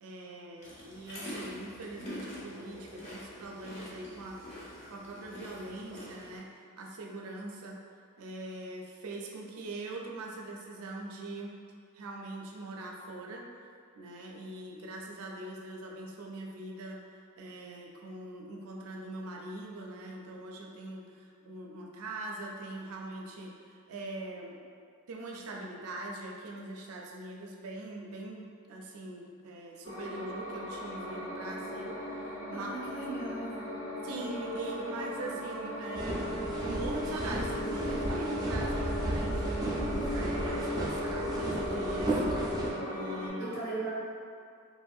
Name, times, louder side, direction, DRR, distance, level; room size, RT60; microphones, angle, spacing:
voice 1, 0.0-6.5 6.8-7.8 8.2-11.5 11.9-13.4 14.0-17.0 17.4-24.6 25.1-32.7 34.0-36.3 36.6-42.5 42.9-43.5, right 2 dB, 90° right, 0 dB, 0.4 m, -42 dB
sound 1, 0.6-6.4, equal, 30° left, 0.7 m, -45 dB
sound 2, 29.8-43.3, equal, 85° left, 1.4 m, -38 dB
voice 2, 32.5-33.6 43.4-43.9, right 2 dB, 60° left, -9 dB, 1.0 m, -38 dB
sound 3, 35.9-42.7, right 1 dB, 20° right, 0.4 m, -33 dB
3.0 x 2.6 x 2.3 m, 2.3 s
head